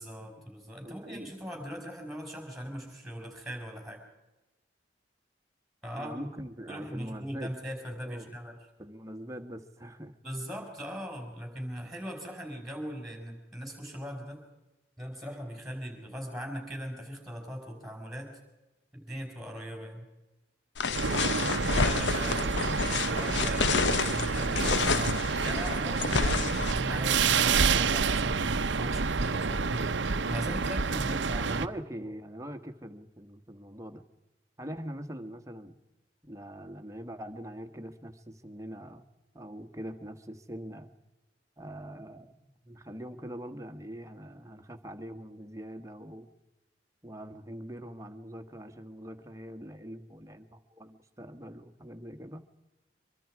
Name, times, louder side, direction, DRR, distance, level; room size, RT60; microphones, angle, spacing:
voice 1, 0.0-4.0 5.8-6.3 6.7-8.6 10.2-14.4 15.0-18.4 18.9-20.1 21.7-22.5 22.9-31.7 32.0-32.1, equal, ahead, 3 dB, 4.9 m, -39 dB
voice 2, 0.8-1.3 6.0-7.5 8.0-8.3 8.8-10.1 22.4-22.6 31.5-34.0 34.6-35.7 36.2-39.0 39.3-40.9 41.6-46.3 47.0-52.4, equal, 15° right, 7 dB, 1.4 m, -43 dB
sound 1, 20.8-26.7, left 4 dB, 70° left, 0.8 m, -30 dB
sound 2, 20.9-31.7, right 5 dB, 75° right, 0.8 m, -28 dB
24.5 x 23.5 x 4.8 m, 1.0 s
head